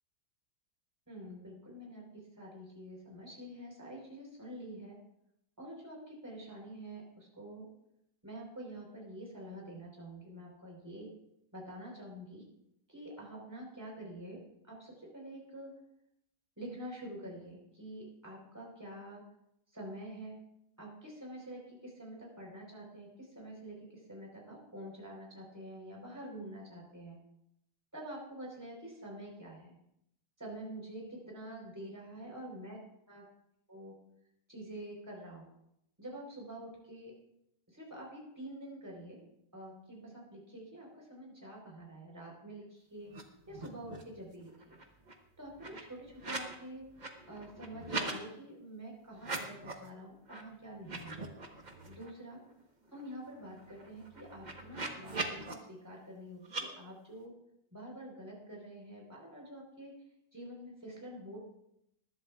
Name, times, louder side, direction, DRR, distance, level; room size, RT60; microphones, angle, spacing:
voice 1, 1.1-5.0 5.6-7.7 8.2-11.1 11.5-12.4 12.9-14.4 14.7-15.7 16.6-19.2 19.7-20.4 20.8-27.2 27.9-29.7 30.4-32.8 33.1-33.2 33.7-33.9 34.5-35.5 36.0-37.1 37.7-39.2 39.5-43.1 43.5-44.8 45.4-46.8 47.3-51.1 51.9-52.4 52.9-57.3 57.7-59.9 60.3-61.4, right 1 dB, 10° right, -2 dB, 4.0 m, -47 dB
sound 1, 43.1-43.2 43.5-44.2 44.5-46.6 46.9-48.2 49.1-49.9 50.3-50.4 50.8-52.1 52.5-52.6 52.9-55.5 56.4-56.6, right 3 dB, 30° right, 1.1 m, -41 dB
20.5 x 11.0 x 2.4 m, 0.79 s
omnidirectional pair, 1.8 m